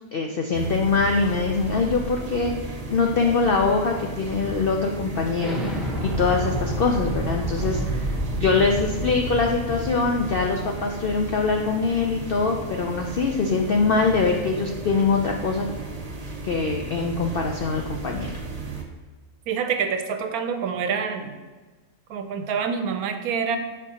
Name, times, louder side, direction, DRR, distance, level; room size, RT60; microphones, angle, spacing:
voice 1, 0.1-15.7 16.4-18.3, left 4 dB, 70° left, 2 dB, 0.5 m, -23 dB
sound 1, 0.5-18.8, right 3 dB, 35° right, 0.7 m, -35 dB
Explosion, 5.4-10.9, right 1 dB, ahead, 0.7 m, -29 dB
voice 2, 19.5-21.3 22.1-23.6, right 6 dB, 75° right, 7 dB, 1.1 m, -26 dB
7.3 x 5.4 x 2.8 m, 1.3 s
omnidirectional pair, 1.6 m